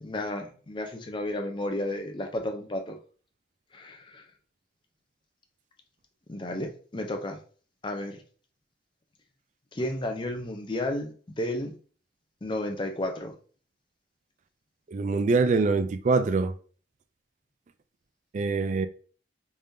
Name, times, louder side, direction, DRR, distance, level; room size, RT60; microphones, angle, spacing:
voice 1, 0.0-3.0 3.7-4.2 6.3-7.4 7.8-8.2 9.7-11.8 12.4-13.3, left 1 dB, 25° left, 0.6 m, -32 dB
voice 2, 14.9-16.5 18.3-18.9, right 4 dB, 40° right, 0.3 m, -24 dB
3.5 x 3.4 x 2.7 m
head